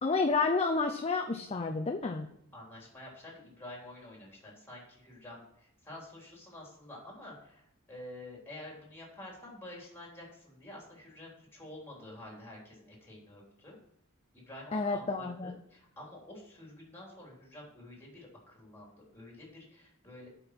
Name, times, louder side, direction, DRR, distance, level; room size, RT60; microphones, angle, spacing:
voice 1, 0.0-2.3 14.7-15.5, left 4 dB, 30° left, 4 dB, 0.6 m, -30 dB
voice 2, 2.5-13.8 14.3-20.3, left 1 dB, 10° left, -3 dB, 3.3 m, -49 dB
8.2 x 5.3 x 6.0 m, 0.77 s
head